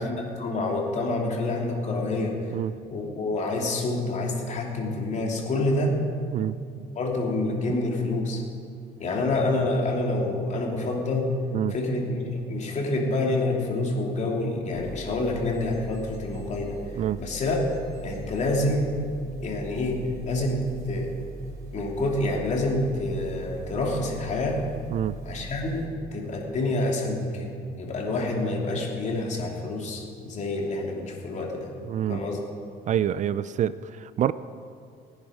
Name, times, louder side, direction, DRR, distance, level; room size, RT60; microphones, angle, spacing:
voice 1, 0.0-2.4 2.9-5.9 6.9-8.4 9.0-11.3 11.7-16.8 17.2-17.6 18.0-18.9 19.4-21.1 21.7-24.6 25.2-27.5 27.8-31.7 32.1-32.4, left 2 dB, 45° left, -1 dB, 3.1 m, -27 dB
sound 1, 14.7-25.9, right 2 dB, 60° right, 3.2 m, -41 dB
voice 2, 31.8-32.2 32.9-34.3, right 10 dB, 45° right, 15 dB, 0.4 m, -26 dB
19.5 x 10.5 x 5.1 m, 2.3 s
cardioid pair, 110°, 17 cm